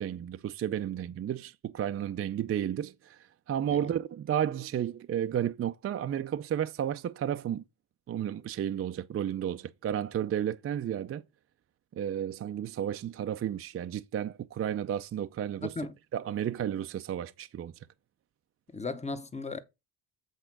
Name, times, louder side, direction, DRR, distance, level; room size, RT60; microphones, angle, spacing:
voice 1, 0.0-7.6 8.1-11.2 11.9-15.7 16.1-17.7, right 10 dB, 35° right, 0.4 m, -32 dB
voice 2, 15.6-15.9 18.7-19.6, left 3 dB, 15° left, 0.7 m, -36 dB
8.0 x 3.6 x 5.9 m
cardioid pair, 110°, 45 cm